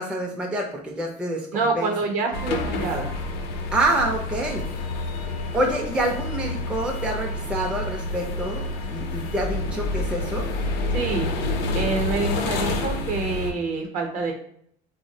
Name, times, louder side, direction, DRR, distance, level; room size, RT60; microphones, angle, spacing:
voice 1, 0.0-1.9 3.7-4.7 5.5-8.6 8.9-10.5, right 1 dB, 5° right, 0 dB, 0.4 m, -27 dB
voice 2, 1.5-3.1 10.9-11.3 11.7-14.3, right 4 dB, 50° right, 4 dB, 0.6 m, -26 dB
sound 1, 2.3-13.5, left 2 dB, 75° left, 0.5 m, -28 dB
3.4 x 2.0 x 2.6 m, 0.66 s
cardioid pair, 120°, 17 cm